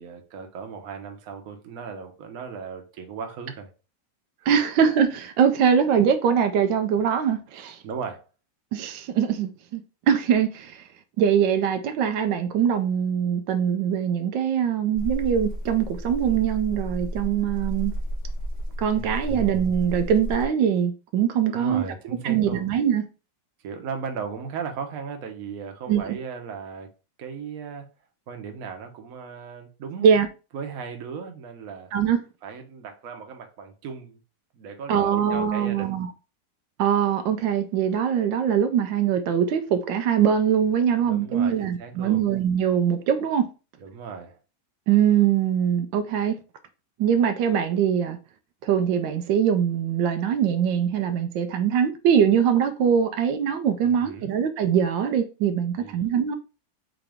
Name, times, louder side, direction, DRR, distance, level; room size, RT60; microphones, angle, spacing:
voice 1, 0.0-3.7 4.4-4.5 7.8-8.2 19.0-19.4 21.5-22.7 23.6-26.9 27.2-27.9 28.3-30.1 30.5-31.9 32.4-34.2 34.5-36.0 41.0-42.2 43.8-44.4 53.8-54.3 55.8-56.1, right 6 dB, 55° right, 1.2 m, -36 dB
voice 2, 4.5-7.8 8.7-9.8 10.1-10.8 11.2-17.9 18.8-21.9 22.2-23.0 25.9-26.2 30.0-30.3 31.9-32.2 34.9-36.1 36.8-43.5 44.9-46.4 47.0-48.2 48.6-56.4, right 8 dB, 85° right, 1.3 m, -22 dB
sound 1, 14.9-20.5, equal, 30° left, 0.9 m, -32 dB
3.9 x 3.9 x 3.4 m
omnidirectional pair, 2.0 m